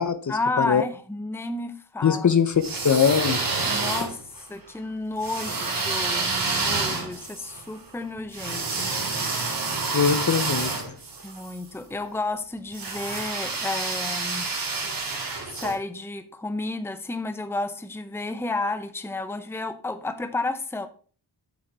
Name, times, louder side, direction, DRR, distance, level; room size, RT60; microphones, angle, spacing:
voice 1, 0.3-2.3 3.6-8.9 11.2-14.5 15.5-20.9, left 2 dB, 5° left, 10 dB, 0.7 m, -31 dB
voice 2, 2.0-2.5 2.8-3.4 9.9-10.9, left 7 dB, 45° left, 12 dB, 0.7 m, -21 dB
sound 1, 2.5-4.4 5.2-11.6 12.7-15.7, right 4 dB, 55° right, 2.5 m, -28 dB
8.4 x 6.4 x 4.6 m, 0.40 s
wide cardioid pair, 135°, 42 cm